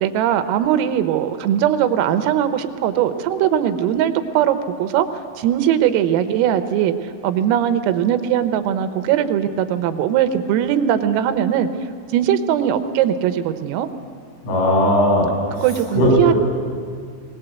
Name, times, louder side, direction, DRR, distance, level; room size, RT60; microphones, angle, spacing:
voice 1, 0.0-5.1 5.4-11.7 12.1-13.9 15.6-16.3, right 10 dB, 85° right, 10 dB, 3.6 m, -20 dB
voice 2, 14.4-15.7 16.0-16.4, equal, 70° left, -4 dB, 9.6 m, -17 dB
21.0 x 19.0 x 8.0 m, 2.1 s
omnidirectional pair, 5.9 m